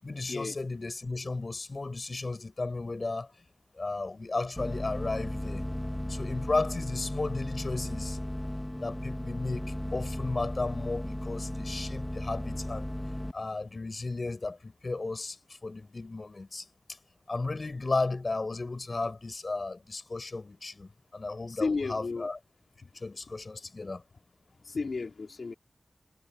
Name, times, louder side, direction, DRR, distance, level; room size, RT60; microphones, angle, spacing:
voice 1, 0.0-3.4 3.7-5.6 6.1-8.2 8.8-12.9 13.3-17.0 17.3-22.4 22.9-24.0, left 3 dB, 45° left, 6.1 m, -34 dB
sound 1, 4.6-13.3, left 1 dB, 15° left, 2.0 m, -35 dB
voice 2, 21.5-22.3 24.6-25.5, left 4 dB, 65° left, 4.5 m, -33 dB
wide cardioid pair, 85°, 0 cm